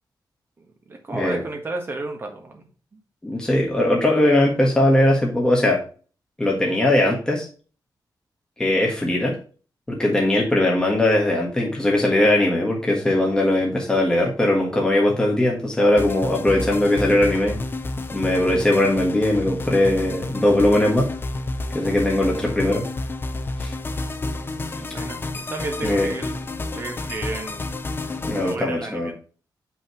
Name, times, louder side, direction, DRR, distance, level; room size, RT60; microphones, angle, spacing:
voice 1, 0.6-3.0 24.8-27.7 28.0-29.1, right 2 dB, 30° right, 3 dB, 1.6 m, -33 dB
voice 2, 3.2-5.8 6.4-7.5 8.6-9.3 9.9-17.6 18.1-21.1 21.7-22.8 23.6-23.7 25.8-26.1 28.3-29.1, left 1 dB, 10° left, -1 dB, 1.5 m, -20 dB
sound 1, 16.0-28.6, left 2 dB, 30° left, 0.6 m, -30 dB
6.9 x 5.6 x 3.1 m, 0.38 s
wide cardioid pair, 175°, 8 cm